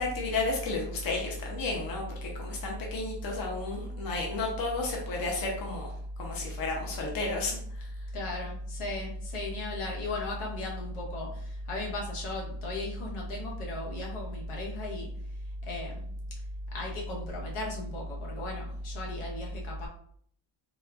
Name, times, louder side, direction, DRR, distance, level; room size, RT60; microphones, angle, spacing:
voice 1, 0.0-5.9 6.2-7.9, left 3 dB, 45° left, -1 dB, 0.7 m, -33 dB
voice 2, 8.1-15.1 15.6-16.1 16.7-19.9, left 1 dB, 80° left, -2 dB, 1.1 m, -35 dB
4.2 x 2.2 x 2.3 m, 0.62 s
cardioid pair, 165°, 49 cm